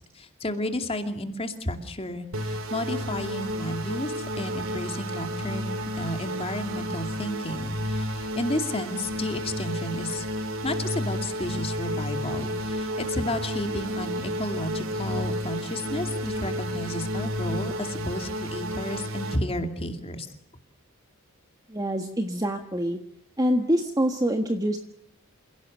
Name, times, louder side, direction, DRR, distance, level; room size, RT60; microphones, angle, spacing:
voice 1, 0.1-20.3, left 1 dB, 25° left, 6 dB, 2.5 m, -32 dB
sound 1, 2.3-19.4, equal, 65° right, 2.9 m, -31 dB
Wind instrument woodwind instrument, 2.8-7.3, right 11 dB, 30° right, 4.1 m, -48 dB
voice 2, 21.7-23.0 23.4-24.8, equal, 15° right, 5 dB, 1.5 m, -25 dB
28.5 x 17.0 x 7.9 m, 0.73 s
head